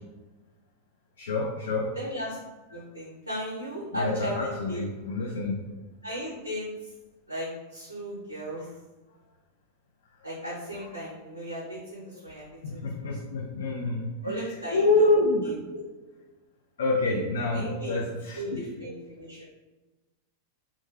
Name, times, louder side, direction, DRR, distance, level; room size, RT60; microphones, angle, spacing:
voice 1, 1.2-1.9 3.9-5.6 8.6-8.7 12.6-14.4 14.7-15.4 16.8-18.4, left 2 dB, 65° left, -2 dB, 0.3 m, -27 dB
voice 2, 1.9-2.4 2.7-4.8 6.0-6.9 7.3-8.7 10.2-13.2 14.2-15.1 15.4-15.5 17.5-18.1 18.3-19.4, right 1 dB, 85° right, -4 dB, 0.6 m, -36 dB
2.4 x 2.1 x 3.1 m, 1.1 s
figure-of-eight pair, 90°, 0 cm